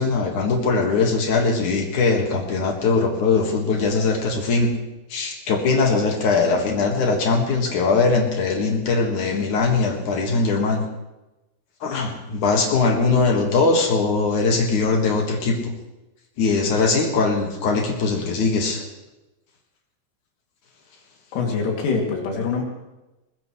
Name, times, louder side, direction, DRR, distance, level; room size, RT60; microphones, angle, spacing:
voice 1, 0.0-4.7 5.1-10.8 11.8-15.6 16.4-18.8, left 4 dB, 55° left, 2 dB, 2.3 m, -21 dB
voice 2, 21.3-22.6, left 4 dB, 80° left, 0 dB, 5.1 m, -24 dB
22.0 x 20.5 x 3.2 m, 1.0 s
omnidirectional pair, 5.7 m